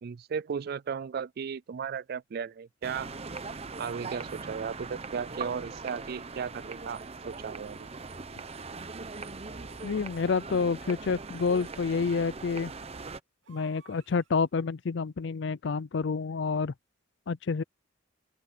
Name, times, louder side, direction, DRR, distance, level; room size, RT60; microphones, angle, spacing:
voice 1, 0.0-3.2 3.8-7.0 7.2-7.9, right 6 dB, 50° right, 0.3 m, -35 dB
sound 1, 2.8-13.2, right 4 dB, 30° right, 0.8 m, -41 dB
sound 2, 3.1-3.2 4.2-4.9 6.1-6.8 9.5-10.5 13.4-14.5, right 5 dB, 75° right, 3.0 m, -60 dB
voice 2, 9.8-12.7 13.5-16.7 17.3-17.6, left 5 dB, 60° left, 0.5 m, -28 dB
open air
head